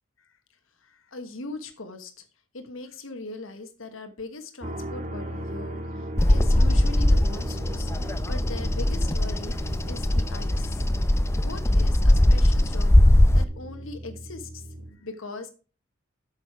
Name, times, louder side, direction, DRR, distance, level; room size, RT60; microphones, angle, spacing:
voice 1, 0.8-2.2 2.5-10.8 11.4-13.0 13.3-15.5, left 3 dB, 90° left, 7 dB, 1.3 m, -40 dB
sound 1, 4.6-14.9, right 1 dB, 40° right, 1.6 m, -37 dB
Bird vocalization bird call bird song, 6.2-13.4, left 1 dB, 15° left, 0.5 m, -20 dB
8.8 x 6.5 x 4.7 m, 0.34 s
head